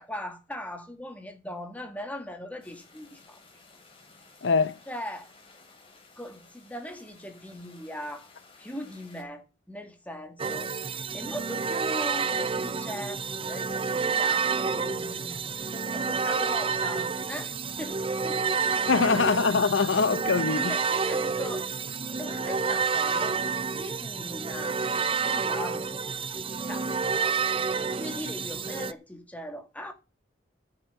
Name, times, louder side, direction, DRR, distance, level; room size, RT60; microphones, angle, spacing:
voice 1, 0.0-3.4 4.9-5.3 6.2-8.3 8.6-18.5 18.8-19.1 20.7-21.7 22.2-23.4 23.8-24.8 25.2-25.9 26.6-26.9 27.8-29.9, left 1 dB, 10° left, 2.0 m, -40 dB
sound 1, 2.6-9.2, left 3 dB, 30° left, 3.5 m, -55 dB
voice 2, 4.4-4.8 18.9-20.7, left 4 dB, 85° left, 0.7 m, -23 dB
sound 2, 10.4-28.9, right 5 dB, 30° right, 0.5 m, -29 dB
11.0 x 7.9 x 7.1 m
head